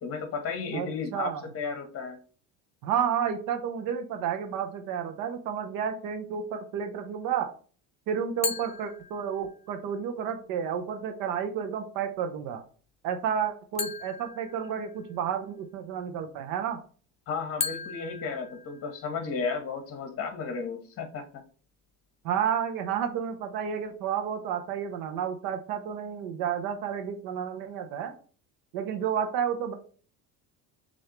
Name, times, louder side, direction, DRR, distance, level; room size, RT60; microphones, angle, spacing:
voice 1, 0.0-2.2 17.3-21.4, left 5 dB, 40° left, 6 dB, 1.2 m, -34 dB
voice 2, 0.7-1.5 2.8-7.5 8.1-12.6 13.0-16.8 22.2-28.1 28.7-29.7, right 8 dB, 70° right, 6 dB, 0.8 m, -31 dB
sound 1, 8.4-9.7 13.8-15.3 17.6-19.3, left 5 dB, 20° left, 0.5 m, -37 dB
6.5 x 2.7 x 3.0 m, 0.42 s
cardioid pair, 120°, 37 cm